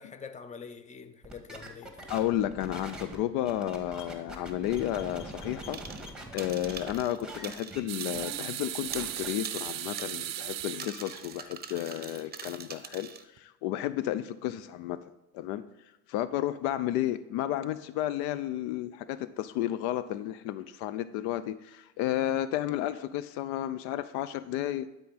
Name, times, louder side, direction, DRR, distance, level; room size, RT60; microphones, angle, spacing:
voice 1, 0.0-2.1, left 6 dB, 15° left, 0.7 m, -45 dB
sound 1, 1.2-7.0 7.2-7.8 8.1-8.3 8.6-9.3, right 1 dB, ahead, 1.8 m, -43 dB
voice 2, 2.1-5.8 6.3-15.7 16.1-24.9, left 12 dB, 60° left, 0.5 m, -32 dB
sound 2, 5.7-6.1 6.4-8.5 8.8-13.2, right 7 dB, 20° right, 0.9 m, -44 dB
sound 3, 7.9-11.8 12.2-12.3 13.4-13.5, right 13 dB, 40° right, 0.6 m, -37 dB
11.5 x 5.0 x 4.1 m
hypercardioid pair, 65°, 44 cm